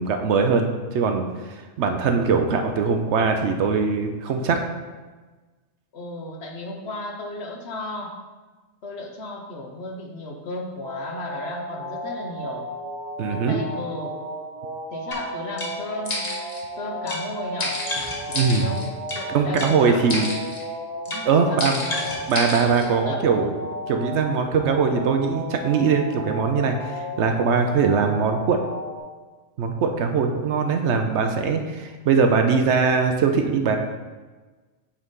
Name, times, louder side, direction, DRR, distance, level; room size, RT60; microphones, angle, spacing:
voice 1, 0.0-4.6 13.2-13.6 18.3-18.7 19.3-20.3 21.3-21.8 22.3-23.5 23.9-28.6 29.6-33.8, right 5 dB, 70° right, 5 dB, 0.9 m, -21 dB
voice 2, 5.9-8.2 8.8-12.6 13.3-14.2 14.9-16.3 16.8-17.8 18.6-20.3 21.1-22.1 23.1-23.5, left 1 dB, 60° left, 1 dB, 1.1 m, -34 dB
sound 1, 10.8-29.0, equal, 40° right, 1.2 m, -34 dB
sound 2, 15.1-15.2 15.6-15.7 16.0-16.6 17.1-17.2 17.6-19.2 19.6-19.7 20.1-20.6 21.0-21.2 21.6-22.9, left 1 dB, 35° left, 1.1 m, -30 dB
8.7 x 4.0 x 3.7 m, 1.3 s
omnidirectional pair, 1.3 m